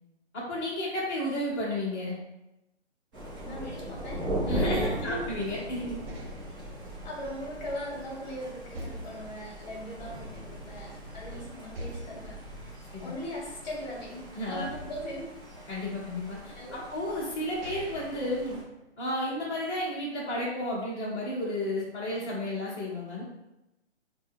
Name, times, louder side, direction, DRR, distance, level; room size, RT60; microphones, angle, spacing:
voice 1, 0.3-2.2 4.4-6.0 11.3-11.4 12.9-13.1 14.3-14.7 15.7-18.6 19.0-23.2, left 1 dB, 20° left, -10 dB, 0.8 m, -32 dB
Thunder, 3.1-18.6, right 1 dB, 20° right, 0.7 m, -38 dB
voice 2, 3.4-5.3 7.0-15.4 16.5-16.9, equal, 40° left, -2 dB, 1.1 m, -40 dB
sound 1, 5.4-8.2 8.7-10.7 11.0-11.1 11.7-14.1 14.6-16.2 17.0-17.1 17.4-19.2, equal, 55° right, 0.7 m, -46 dB
3.8 x 2.2 x 3.7 m, 0.93 s
hypercardioid pair, 150°, 35 cm